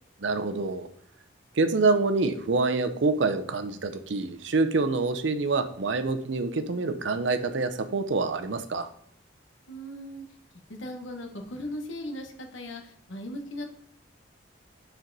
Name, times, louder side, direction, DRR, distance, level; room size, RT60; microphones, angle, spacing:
voice 1, 0.2-0.9 1.6-8.9, right 3 dB, 70° right, 9 dB, 0.6 m, -26 dB
voice 2, 9.7-10.2 10.7-13.7, left 1 dB, 80° left, 4 dB, 1.2 m, -38 dB
6.7 x 4.5 x 4.0 m, 0.62 s
head